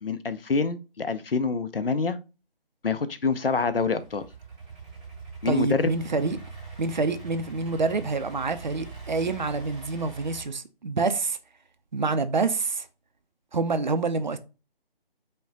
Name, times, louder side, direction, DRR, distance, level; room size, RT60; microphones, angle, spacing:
voice 1, 0.0-2.2 2.8-4.2 5.4-5.9, left 4 dB, 70° left, 0.6 m, -26 dB
Idling / Accelerating revving vroom, 3.3-10.4, right 4 dB, 10° right, 0.7 m, -43 dB
voice 2, 5.5-6.4 6.8-11.4 11.9-12.9 13.5-14.4, right 3 dB, 50° right, 0.5 m, -27 dB
5.4 x 2.2 x 3.7 m
figure-of-eight pair, 150°, 30 cm